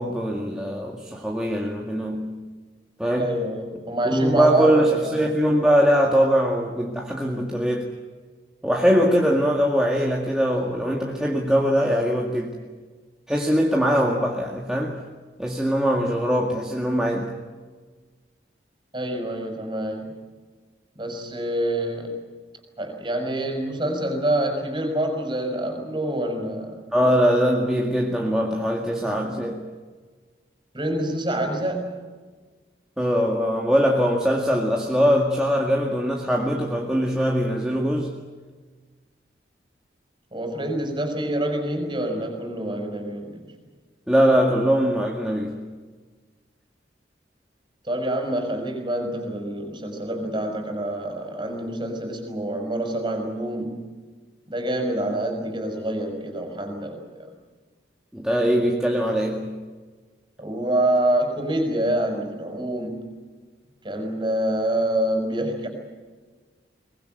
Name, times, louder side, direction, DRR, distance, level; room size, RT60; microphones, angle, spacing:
voice 1, 0.0-2.3 3.0-3.4 4.0-7.9 8.6-12.5 13.3-15.0 15.4-17.3 26.9-29.6 33.0-38.1 44.1-45.6 58.1-59.6, equal, 5° right, -2 dB, 2.0 m, -22 dB
voice 2, 3.2-5.2 18.9-20.1 21.0-22.2 22.8-26.7 30.7-31.9 40.3-43.4 47.8-53.8 54.5-57.3 60.4-63.0 63.8-65.7, right 1 dB, 25° right, 5 dB, 5.6 m, -26 dB
23.5 x 20.5 x 9.2 m, 1.4 s
head